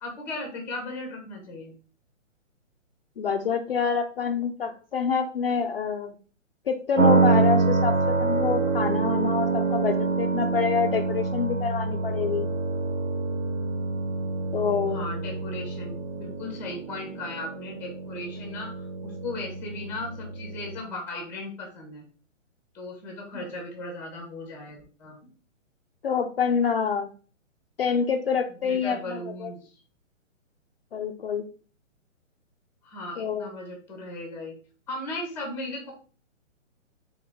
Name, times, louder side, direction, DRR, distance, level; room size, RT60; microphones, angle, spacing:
voice 1, 0.0-1.7 14.9-22.1 22.7-25.2 28.6-29.8 32.8-34.5 34.9-35.9, left 2 dB, 5° left, 1 dB, 0.7 m, -37 dB
voice 2, 3.2-6.2 6.7-12.5 14.5-15.1 23.3-23.4 26.0-27.1 27.8-29.5 30.9-31.5 33.2-33.5, left 6 dB, 50° left, 4 dB, 0.5 m, -27 dB
sound 1, 7.0-20.8, right 3 dB, 80° right, 1.3 m, -26 dB
3.9 x 3.7 x 3.4 m, 0.39 s
hypercardioid pair, 155°, 39 cm